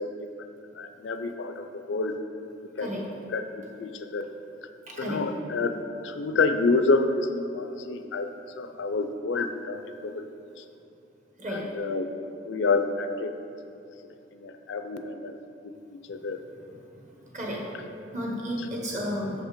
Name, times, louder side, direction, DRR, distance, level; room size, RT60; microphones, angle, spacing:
voice 1, 0.0-2.2 2.6-2.9 3.3-4.3 4.6-4.7 5.0-5.8 6.0-10.3 10.6-10.7 11.5-12.1 12.5-13.4 14.0-15.4 15.6-16.4 18.6-18.7, left 3 dB, 70° left, 8 dB, 0.4 m, -29 dB
voice 2, 4.9-5.2 11.4-11.7 17.2-19.4, equal, 40° right, -2 dB, 1.2 m, -33 dB
6.6 x 5.3 x 5.1 m, 2.8 s
head